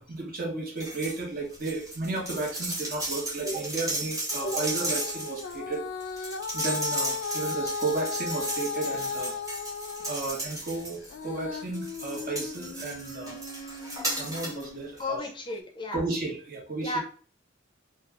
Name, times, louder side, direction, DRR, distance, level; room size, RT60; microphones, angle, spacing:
voice 1, 0.0-5.8 6.5-9.3 10.0-13.8 14.2-15.2 15.9-17.0, right 3 dB, 50° right, -1 dB, 1.1 m, -33 dB
sound 1, 0.8-1.2 1.5-11.3 11.7-14.6 15.0-15.1, right 2 dB, 20° right, 1.0 m, -35 dB
Female singing, 4.3-10.2 10.6-15.0 15.6-15.7, left 5 dB, 85° left, 0.4 m, -36 dB
voice 2, 15.0-16.0 16.8-17.0, left 2 dB, 25° left, 2 dB, 0.6 m, -33 dB
2.7 x 2.3 x 3.3 m, 0.40 s
head